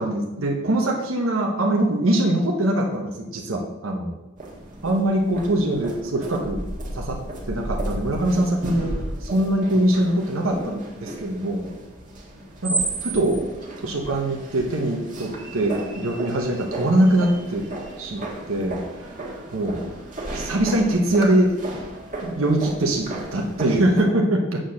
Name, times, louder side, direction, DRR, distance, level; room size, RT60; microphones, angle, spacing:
voice 1, 0.0-4.2 4.8-6.6 6.9-7.2 7.5-11.6 12.6-13.4 13.8-17.7 18.0-18.8 19.5-19.8 20.3-21.6 22.2-24.6, right 1 dB, 90° right, 0 dB, 1.1 m, -22 dB
sound 1, 4.4-24.0, right 2 dB, 40° right, 1.6 m, -34 dB
7.7 x 4.4 x 6.4 m, 1.0 s
head